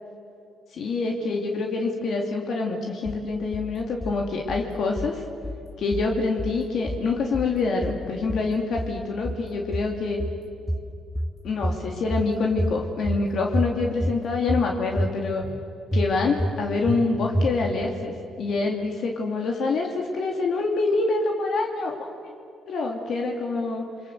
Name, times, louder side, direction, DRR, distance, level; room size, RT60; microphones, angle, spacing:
voice 1, 0.7-5.2 5.8-10.2 11.4-15.4 15.9-22.1 22.7-23.8, left 3 dB, 65° left, 1 dB, 2.9 m, -26 dB
sound 1, 3.1-3.7 4.0-4.7 5.0-5.7 5.9-6.6 6.9-7.6 7.8-8.5 8.8-9.5 9.7-10.4 10.7-11.4 11.6-12.3 12.6-13.2 13.5-14.2 14.5-15.1 15.4-15.6 15.9-16.6 16.9-17.0 17.3-17.8, equal, 15° left, 2.4 m, -28 dB
29.5 x 23.5 x 8.0 m, 2.6 s
cardioid pair, 90°, 0 cm